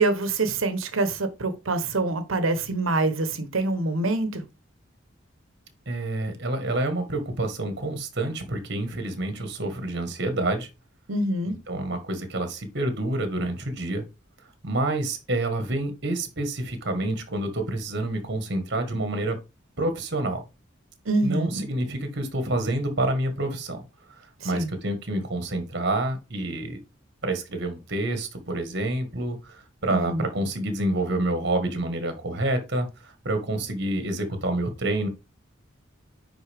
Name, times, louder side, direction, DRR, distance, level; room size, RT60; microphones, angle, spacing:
voice 1, 0.0-4.4 11.1-11.5 21.1-21.6 24.4-24.7 29.9-30.2, right 2 dB, 90° right, 1.1 m, -25 dB
voice 2, 5.9-10.7 11.4-14.0 14.6-19.4 19.8-20.4 21.2-23.8 24.4-26.8 27.2-35.1, right 2 dB, 55° right, 1.5 m, -28 dB
9.6 x 4.0 x 3.5 m
head